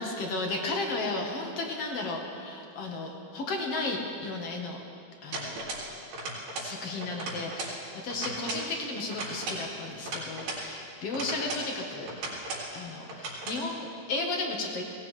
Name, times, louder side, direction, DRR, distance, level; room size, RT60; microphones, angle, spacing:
voice 1, 0.0-4.8 5.2-5.6 6.6-12.1 12.7-14.8, left 2 dB, 55° left, 1 dB, 1.7 m, -34 dB
sound 1, 5.3-5.9 6.1-6.7 7.0-7.8 8.1-8.7 9.1-10.7 11.1-11.7 12.1-12.7 13.1-13.6, right 2 dB, 75° right, 5.5 m, -36 dB
22.0 x 18.5 x 3.3 m, 2.5 s
omnidirectional pair, 4.5 m